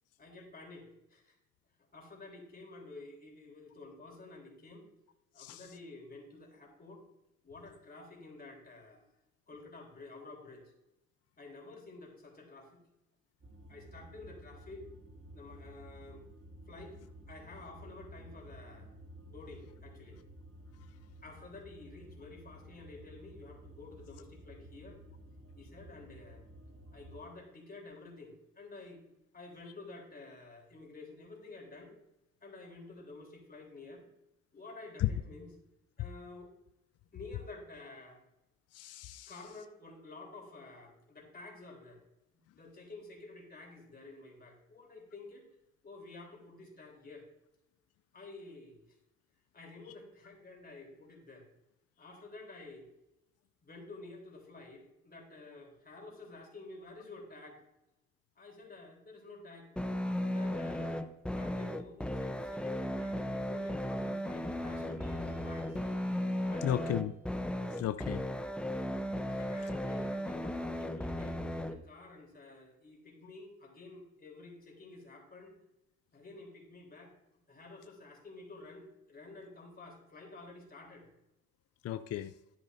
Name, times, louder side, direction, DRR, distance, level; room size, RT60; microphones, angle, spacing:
voice 1, 0.2-1.4 1.9-4.9 5.3-7.0 7.4-9.1 9.5-10.6 11.4-12.8 13.7-14.8 15.3-16.3 16.7-17.0 17.3-18.9 19.2-20.2 21.2-25.0 25.6-26.4 26.9-29.0 29.3-32.0 32.4-34.1 34.5-35.5 36.0-36.5 37.1-38.2 39.3-42.0 42.5-45.5 45.8-47.3 48.1-49.0 49.5-51.5 52.0-52.9 53.6-57.6 58.4-59.7 60.0-65.8 66.5-67.0 69.3-75.6 76.1-77.1 77.5-81.1, left 3 dB, 30° left, 0 dB, 3.5 m, -51 dB
sound 1, 13.4-27.2, right 1 dB, 50° right, 2.8 m, -53 dB
voice 2, 38.7-39.3 66.6-67.1 67.8-68.2 81.8-82.3, left 12 dB, 55° left, 10 dB, 0.5 m, -34 dB
sound 2, 59.8-71.8, left 1 dB, 5° left, 0.6 m, -36 dB
sound 3, 64.5-67.3, equal, 80° right, 3.9 m, -56 dB
12.5 x 9.6 x 2.6 m, 0.90 s
cardioid pair, 90°, 30 cm